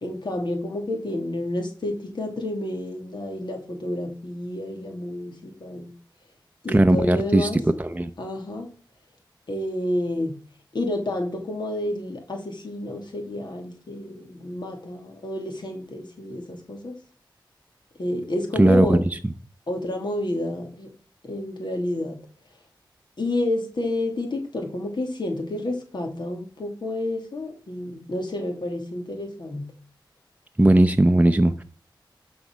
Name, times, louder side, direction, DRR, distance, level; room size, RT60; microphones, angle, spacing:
voice 1, 0.0-5.9 6.6-7.6 8.2-8.7 9.5-10.4 10.7-16.9 18.0-19.0 19.7-20.9 21.3-22.2 23.2-29.7, left 1 dB, 65° left, 2 dB, 2.5 m, -29 dB
voice 2, 6.7-8.1 18.6-19.2 30.6-31.6, right 1 dB, 15° right, 8 dB, 0.7 m, -18 dB
11.5 x 4.3 x 6.2 m, 0.40 s
wide cardioid pair, 55°, 8 cm